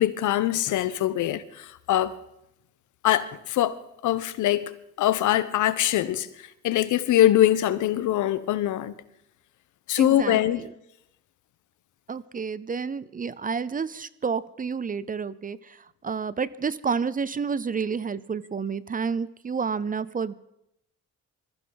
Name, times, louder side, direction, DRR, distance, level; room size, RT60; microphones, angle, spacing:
voice 1, 0.0-2.1 3.0-4.7 5.0-9.0 9.9-10.6, left 13 dB, 80° left, 1.0 m, -23 dB
voice 2, 10.0-10.7 12.1-20.3, right 5 dB, 30° right, 0.6 m, -30 dB
21.0 x 14.5 x 4.0 m
cardioid pair, 90°, 30 cm